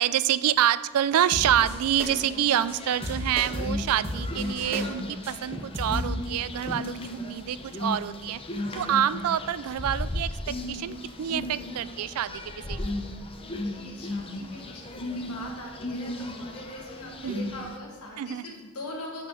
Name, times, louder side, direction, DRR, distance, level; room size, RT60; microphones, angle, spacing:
voice 1, 0.0-8.4 8.8-12.9 17.2-17.5 18.2-18.4, right 10 dB, 75° right, 16 dB, 0.3 m, -27 dB
sound 1, 1.1-1.7 2.0-2.3 2.5-2.8 3.0-4.8 5.2-5.3 5.7-6.1, equal, 10° right, 2.1 m, -33 dB
sound 2, 1.3-17.8, left 1 dB, 25° left, 0.7 m, -36 dB
voice 2, 3.9-4.3 8.6-8.9 13.4-19.3, left 1 dB, 90° left, 0 dB, 1.5 m, -42 dB
13.0 x 4.5 x 4.3 m, 1.6 s
head